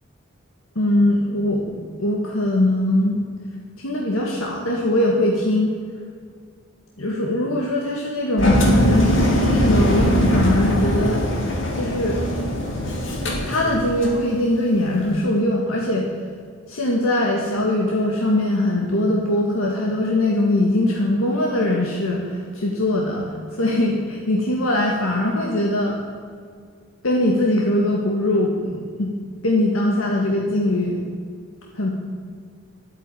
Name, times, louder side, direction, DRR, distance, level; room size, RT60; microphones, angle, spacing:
voice 1, 0.8-3.2 3.8-5.7 7.0-11.2 11.7-12.2 13.4-16.1 16.7-23.3 23.6-26.0 27.0-29.1 29.4-31.0 31.8-31.9, left 1 dB, 85° left, -1 dB, 1.8 m, -21 dB
Engine, 8.4-14.2, equal, 65° left, 2.8 m, -20 dB
12.0 x 9.0 x 9.2 m, 2.1 s
head